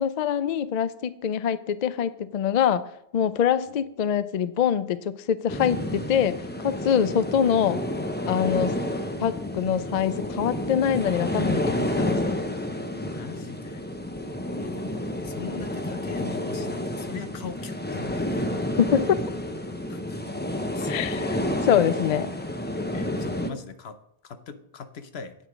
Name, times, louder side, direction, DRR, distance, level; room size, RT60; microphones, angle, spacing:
voice 1, 0.0-2.8 3.1-6.3 6.6-7.8 8.3-8.7 9.2-12.2 18.8-19.2 20.9-21.4 21.6-22.3, left 8 dB, 55° left, 14 dB, 0.5 m, -24 dB
sound 1, 5.5-23.5, left 1 dB, 10° left, 0.7 m, -30 dB
voice 2, 13.0-13.9 14.5-18.5 19.9-20.2 20.7-20.9 22.9-25.4, left 6 dB, 85° left, 10 dB, 1.1 m, -41 dB
9.0 x 7.8 x 5.1 m, 0.74 s
omnidirectional pair, 1.0 m